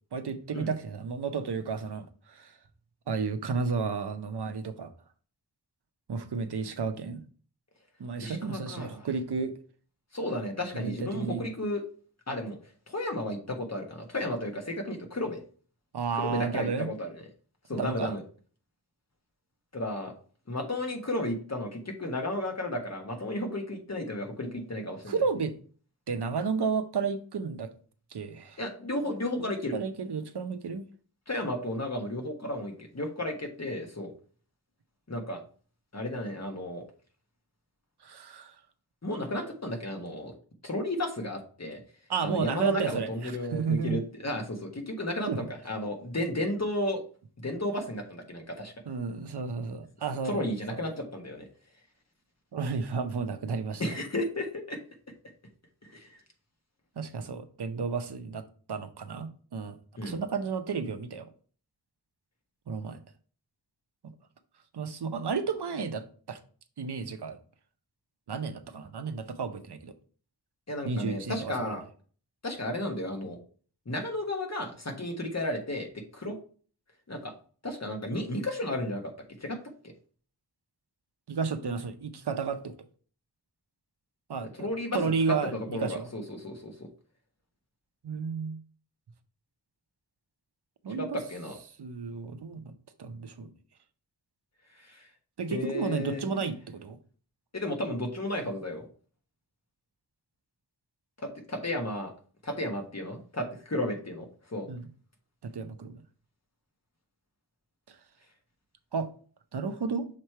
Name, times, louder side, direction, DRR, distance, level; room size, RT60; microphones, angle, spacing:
voice 1, 0.1-2.5 3.1-4.9 6.1-7.2 8.0-9.5 10.7-11.4 15.9-16.9 17.7-18.1 25.1-25.5 26.1-27.7 28.1-28.6 29.4-29.5 29.7-30.8 38.0-38.6 42.1-44.0 45.3-45.4 48.9-50.4 50.7-50.8 52.5-53.8 57.0-59.8 60.0-61.3 62.7-63.0 64.0-64.1 64.7-66.4 66.8-67.4 68.3-69.9 70.8-71.8 81.3-82.9 84.3-86.1 88.0-88.6 90.8-91.2 91.8-92.7 93.0-93.5 95.4-97.0 104.7-104.9 105.4-106.0 107.9-108.0 108.9-109.1 109.5-110.1, right 5 dB, 80° right, 0.7 m, -32 dB
voice 2, 8.2-9.1 10.1-11.8 12.3-12.6 12.9-15.4 16.1-17.2 17.7-18.2 19.7-20.1 20.5-25.1 28.6-29.7 31.3-34.1 35.1-35.4 35.9-36.8 39.0-40.3 40.6-41.8 42.2-47.0 47.4-48.7 50.2-51.5 53.8-54.8 55.8-56.2 60.0-60.2 70.7-71.8 72.4-73.4 73.8-76.4 77.1-77.3 77.6-79.1 79.4-79.6 84.6-85.0 85.3-86.9 91.0-91.6 94.8-95.1 95.5-96.4 97.5-98.9 101.2-102.1 102.4-104.7, left 1 dB, 40° left, 1.4 m, -33 dB
6.6 x 3.2 x 4.5 m
wide cardioid pair, 70°, 39 cm